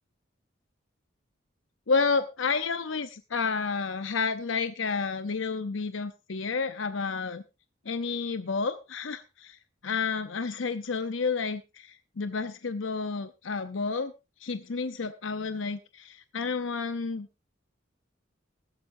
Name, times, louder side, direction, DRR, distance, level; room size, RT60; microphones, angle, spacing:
voice 1, 1.9-7.4 7.9-9.6 9.8-14.1 14.4-17.3, left 4 dB, 75° left, 11 dB, 0.8 m, -30 dB
15.0 x 13.5 x 2.7 m, 0.26 s
head